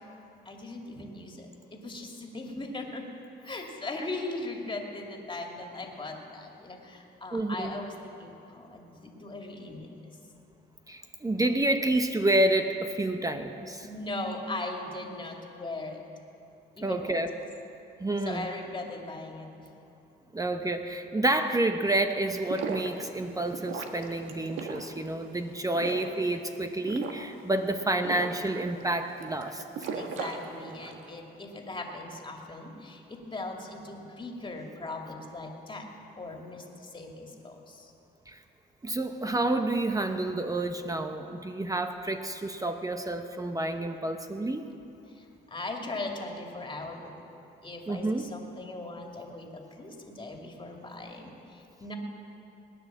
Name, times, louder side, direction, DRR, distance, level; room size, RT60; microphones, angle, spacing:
voice 1, 0.5-3.1 3.4-10.1 13.8-16.0 16.7-17.2 18.3-19.7 29.9-35.9 36.2-37.9 45.1-47.3 47.6-51.9, left 2 dB, 25° left, 1 dB, 2.4 m, -39 dB
voice 2, 7.3-7.7 10.9-13.9 16.8-17.3 18.0-18.5 20.3-29.6 38.3-38.4 38.8-44.6 47.9-48.2, right 1 dB, 15° right, 7 dB, 0.9 m, -29 dB
sound 1, 22.3-31.1, right 5 dB, 85° right, 1.4 m, -39 dB
19.0 x 9.9 x 7.4 m, 2.8 s
cardioid pair, 90°, 20 cm